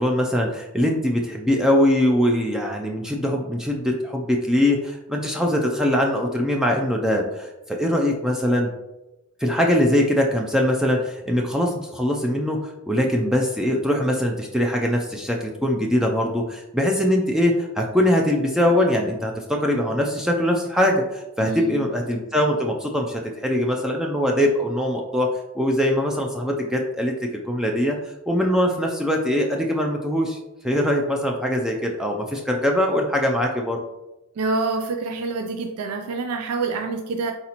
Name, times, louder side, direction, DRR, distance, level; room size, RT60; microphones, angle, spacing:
voice 1, 0.0-8.7 9.4-12.6 12.9-25.3 25.5-28.0 28.3-30.4 30.6-33.8, left 1 dB, 5° right, 1 dB, 0.3 m, -22 dB
voice 2, 21.4-21.8 34.4-37.3, right 3 dB, 85° right, 5 dB, 0.4 m, -27 dB
4.1 x 4.0 x 2.9 m, 0.97 s
head